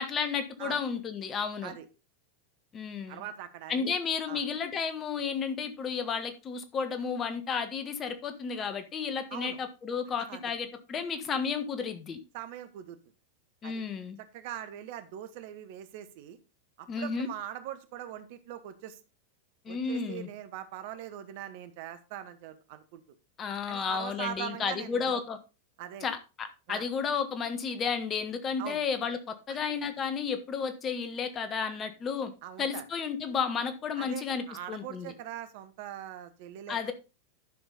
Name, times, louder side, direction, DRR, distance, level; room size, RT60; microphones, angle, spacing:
voice 1, 0.0-1.8 2.7-3.2 3.7-12.2 13.6-14.2 16.9-17.3 19.6-20.3 23.4-25.4 26.0-29.2 29.5-32.3 32.6-35.1 36.7-36.9, left 6 dB, 30° left, 1.5 m, -32 dB
voice 2, 3.1-3.9 4.3-4.4 9.3-9.6 10.3-10.4 12.3-13.0 13.6-13.8 14.3-16.4 16.8-19.0 19.7-23.0 23.7-25.2 25.8-26.1 26.7-26.9 28.6-28.8 32.4-32.8 34.0-36.9, right 11 dB, 55° right, 1.2 m, -41 dB
11.0 x 6.1 x 4.0 m
figure-of-eight pair, 90°, 0 cm